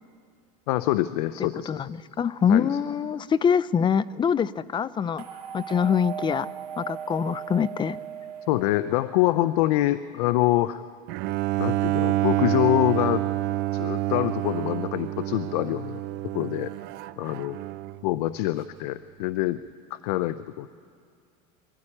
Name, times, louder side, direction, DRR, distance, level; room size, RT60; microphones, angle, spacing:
voice 1, 0.7-1.8 2.5-2.7 8.5-10.8 11.6-13.2 13.7-16.0 16.3-16.7 17.2-17.6 18.0-19.6 19.9-20.7, left 16 dB, 75° left, 15 dB, 0.6 m, -25 dB
voice 2, 1.4-5.3 5.5-6.5 6.8-8.0, left 7 dB, 25° left, 18 dB, 0.5 m, -24 dB
sound 1, 5.2-9.4, right 8 dB, 90° right, 2.8 m, -38 dB
Bowed string instrument, 11.1-18.1, right 15 dB, 55° right, 0.6 m, -28 dB
24.0 x 13.0 x 10.0 m, 2.3 s
supercardioid pair, 115°, 20 cm